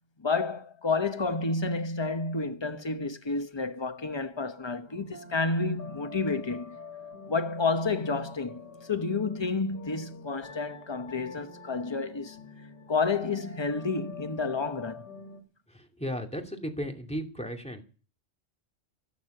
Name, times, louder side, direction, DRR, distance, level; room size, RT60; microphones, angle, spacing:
voice 1, 0.2-6.8 7.3-12.4 12.9-15.1 16.1-16.2, left 4 dB, 25° left, 1.0 m, -30 dB
sound 1, 4.9-15.4, left 4 dB, 40° left, 2.8 m, -47 dB
voice 2, 15.7-17.8, equal, 5° left, 2.6 m, -35 dB
13.0 x 12.5 x 6.7 m
omnidirectional pair, 1.3 m